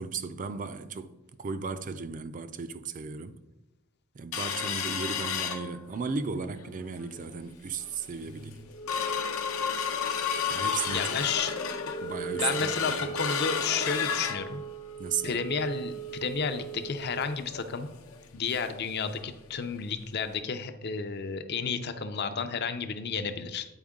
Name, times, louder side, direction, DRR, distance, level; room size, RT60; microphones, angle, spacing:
voice 1, 0.0-3.4 4.1-8.7 10.5-11.1 12.0-13.1 15.0-15.4, right 5 dB, 40° right, 0.4 m, -35 dB
sound 1, 4.3-6.2 6.6-6.7 7.0-7.4 7.9-8.0 8.3-18.8 19.2-19.3 19.6-19.8 20.3-20.4, left 5 dB, 85° left, 0.8 m, -33 dB
voice 2, 10.9-11.5 12.3-14.6 15.2-17.9 18.3-23.7, left 5 dB, 50° left, 0.6 m, -32 dB
8.9 x 4.5 x 3.6 m
head